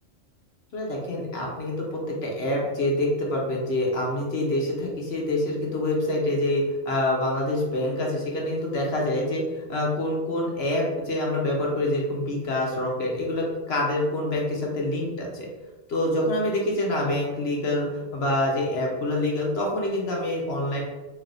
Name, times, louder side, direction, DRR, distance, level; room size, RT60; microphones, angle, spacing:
voice 1, 0.7-15.5 15.9-20.8, left 1 dB, 55° left, -2 dB, 0.9 m, -26 dB
3.3 x 2.6 x 3.8 m, 1.2 s
omnidirectional pair, 1.4 m